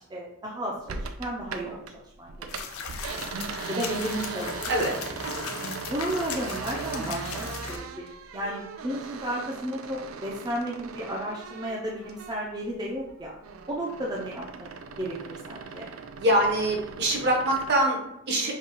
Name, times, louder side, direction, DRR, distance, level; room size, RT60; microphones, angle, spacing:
voice 1, 0.1-2.5 3.1-3.3 3.7-4.7 5.6-13.3 13.7-14.7 15.0-15.9, right 1 dB, 20° right, -3 dB, 0.6 m, -33 dB
sound 1, 0.9-1.9 2.2-12.6 12.9-17.8, right 5 dB, 70° right, 0.4 m, -39 dB
sound 2, 2.5-7.8, left 5 dB, 85° left, 0.6 m, -37 dB
voice 2, 4.7-5.5 16.2-18.5, right 1 dB, 55° right, -1 dB, 1.1 m, -25 dB
5.4 x 2.3 x 3.8 m, 0.85 s
head